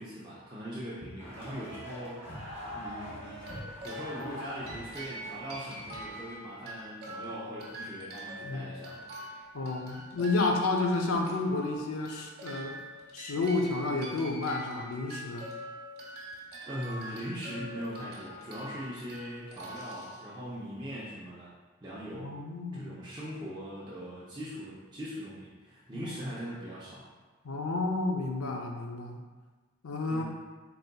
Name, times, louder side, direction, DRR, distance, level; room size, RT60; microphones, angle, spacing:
voice 1, 0.0-2.4 2.7-9.0 16.7-21.5 21.8-22.3 22.7-27.0 30.1-30.2, equal, 20° right, -9 dB, 0.6 m, -41 dB
sound 1, 1.2-6.3, equal, 15° left, 1.2 m, -43 dB
sound 2, 3.4-20.8, equal, 50° right, 1.0 m, -44 dB
voice 2, 9.5-12.8 13.1-15.5 22.1-23.0 25.9-26.1 27.4-29.2 29.8-30.2, left 3 dB, 90° left, 2 dB, 0.5 m, -31 dB
3.9 x 3.9 x 2.2 m, 1.3 s
head